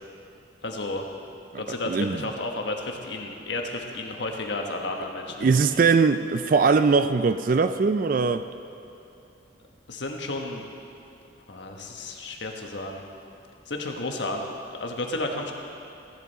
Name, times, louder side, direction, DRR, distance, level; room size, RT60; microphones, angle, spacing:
voice 1, 0.6-1.1 1.6-5.6 9.9-10.6 11.5-13.0 13.7-14.5 14.8-15.5, left 2 dB, 70° left, 2 dB, 1.2 m, -32 dB
voice 2, 1.5-2.2 5.4-8.4, right 4 dB, 45° right, 11 dB, 0.3 m, -21 dB
16.0 x 11.0 x 4.1 m, 2.7 s
head